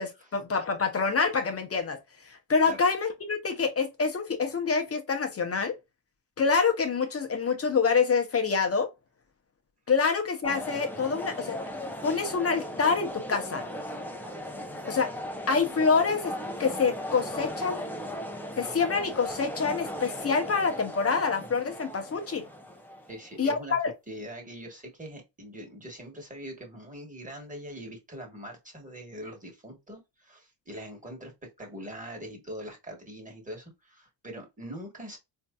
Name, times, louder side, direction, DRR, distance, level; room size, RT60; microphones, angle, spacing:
voice 1, 0.0-2.0 2.3-5.8 6.4-8.9 9.9-11.6 12.0-13.7 14.9-15.1 15.5-16.3 16.6-17.8 18.6-22.4 23.4-23.9, left 5 dB, 30° left, 0.7 m, -26 dB
sound 1, 10.4-23.3, equal, 5° left, 0.5 m, -37 dB
voice 2, 23.1-23.8 24.1-35.2, equal, 15° right, 1.4 m, -42 dB
4.4 x 2.7 x 2.2 m
cardioid pair, 130°, 45 cm